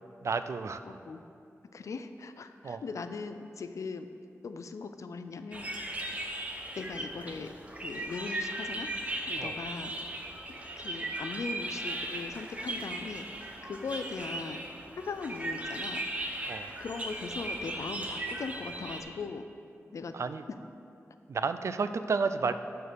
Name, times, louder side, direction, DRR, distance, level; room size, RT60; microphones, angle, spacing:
voice 1, 0.2-1.0 2.6-2.8 9.4-9.6 16.4-16.7 20.1-20.4 21.3-22.5, right 5 dB, 65° right, 11 dB, 0.4 m, -31 dB
voice 2, 0.8-1.2 1.7-4.1 4.4-5.7 6.7-7.5 7.8-10.0 10.5-14.6 15.0-16.1 16.8-19.5 19.9-20.1, left 4 dB, 75° left, 9 dB, 0.5 m, -39 dB
sound 1, 5.5-19.0, right 1 dB, 25° right, 0.9 m, -37 dB
13.0 x 4.5 x 5.1 m, 2.6 s
wide cardioid pair, 90°, 5 cm